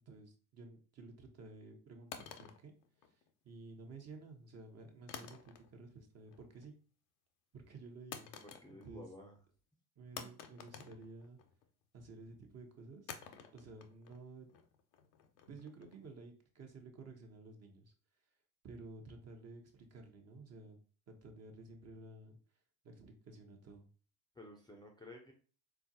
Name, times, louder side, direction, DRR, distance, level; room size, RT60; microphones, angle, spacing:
voice 1, 0.1-2.7 3.1-3.2 3.4-6.7 7.5-8.3 8.7-9.1 10.0-11.4 11.9-13.1 13.5-14.5 15.5-17.9 18.6-20.8 21.1-22.4 22.8-23.9, right 3 dB, 35° right, 4 dB, 0.8 m, -53 dB
sound 1, 2.1-3.5 5.1-5.9 6.2-6.7 8.1-9.1 9.3-9.4 10.2-11.7 13.1-16.1, left 8 dB, 65° left, 0.6 m, -51 dB
voice 2, 8.4-9.4 24.3-25.3, left 1 dB, 10° left, 2 dB, 0.5 m, -53 dB
3.7 x 2.4 x 2.6 m, 0.39 s
hypercardioid pair, 55°, 45 cm